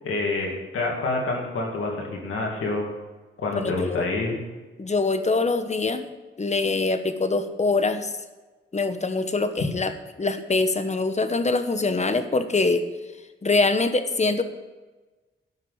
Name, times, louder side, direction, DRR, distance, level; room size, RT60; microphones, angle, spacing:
voice 1, 0.0-2.9 3.4-4.4, left 2 dB, 85° left, -1 dB, 2.3 m, -27 dB
voice 2, 3.5-4.1 4.8-6.1 6.4-8.1 8.7-9.9 10.2-12.8 13.4-14.4, left 3 dB, 35° left, 9 dB, 1.1 m, -24 dB
12.0 x 6.1 x 7.9 m, 1.2 s
cardioid pair, 70°, 21 cm